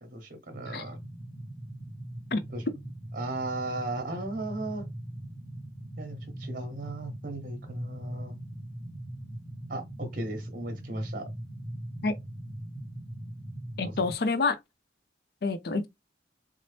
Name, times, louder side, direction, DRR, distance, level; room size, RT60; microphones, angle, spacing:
voice 1, 0.0-1.0 2.5-2.6 3.1-4.9 6.0-8.3 9.7-11.3 13.8-13.9, right 2 dB, 50° right, 0.9 m, -36 dB
sound 1, 0.5-14.1, right 1 dB, 20° left, 1.2 m, -41 dB
voice 2, 13.8-14.6 15.4-15.9, left 3 dB, 60° left, 0.5 m, -27 dB
4.0 x 2.0 x 3.2 m
head